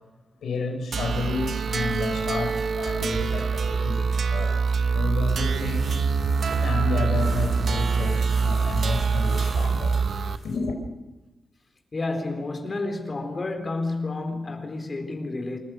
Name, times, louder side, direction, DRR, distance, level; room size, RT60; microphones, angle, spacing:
voice 1, 0.4-4.6 4.9-5.9 6.6-10.0 10.4-10.7, left 4 dB, 90° left, 4.8 m, -31 dB
sound 1, 0.9-10.4, right 5 dB, 65° right, 1.0 m, -24 dB
sound 2, 5.1-10.6, right 2 dB, 45° right, 7.4 m, -43 dB
voice 2, 11.9-15.6, left 2 dB, 35° left, 4.1 m, -30 dB
28.0 x 14.5 x 6.4 m
wide cardioid pair, 110°, 0 cm